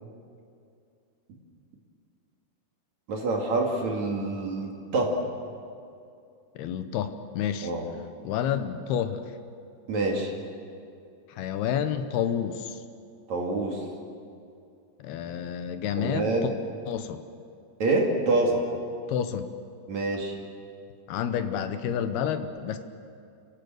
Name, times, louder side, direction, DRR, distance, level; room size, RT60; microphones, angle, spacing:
voice 1, 3.1-5.2 7.6-7.8 9.9-10.3 13.3-13.8 16.0-16.5 17.8-18.6 19.9-20.3, right 2 dB, 45° right, 0 dB, 3.2 m, -26 dB
voice 2, 6.6-7.7 8.2-9.3 11.3-12.8 15.0-16.5 16.9-17.2 19.1-19.5 21.1-22.8, left 9 dB, 75° left, 9 dB, 2.6 m, -29 dB
29.0 x 16.0 x 7.9 m, 2.5 s
omnidirectional pair, 5.2 m